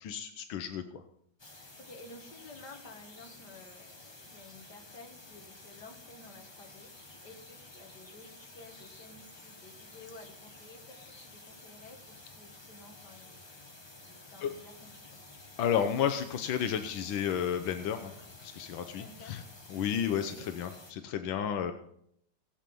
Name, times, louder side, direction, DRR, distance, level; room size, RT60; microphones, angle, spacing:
voice 1, 0.0-1.0 14.4-14.5 15.6-18.1 18.4-19.4 19.7-21.7, left 8 dB, 85° left, 8 dB, 1.5 m, -32 dB
sound 1, 1.4-20.9, left 2 dB, 20° left, 0.9 m, -52 dB
voice 2, 1.9-13.5 14.1-15.2 18.9-19.4 20.3-20.5, left 2 dB, 60° left, 3 dB, 2.4 m, -53 dB
18.5 x 7.6 x 5.3 m, 0.72 s
omnidirectional pair, 2.1 m